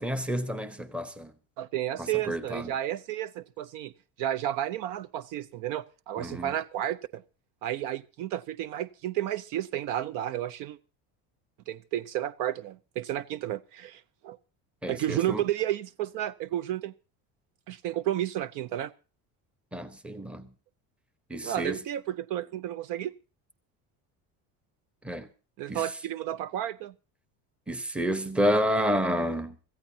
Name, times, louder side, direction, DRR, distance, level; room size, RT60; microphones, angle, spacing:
voice 1, 0.0-1.3 2.0-2.7 6.2-6.5 14.8-15.4 19.7-20.5 21.3-21.8 25.0-25.3 25.7-25.9 27.7-29.6, equal, 5° right, 0.9 m, -30 dB
voice 2, 1.6-3.9 4.2-7.2 7.6-10.8 11.7-14.4 14.9-16.9 17.7-18.9 21.4-23.1 25.6-26.9, right 12 dB, 55° right, 0.7 m, -32 dB
24.5 x 15.0 x 2.8 m
cardioid pair, 175°, 38 cm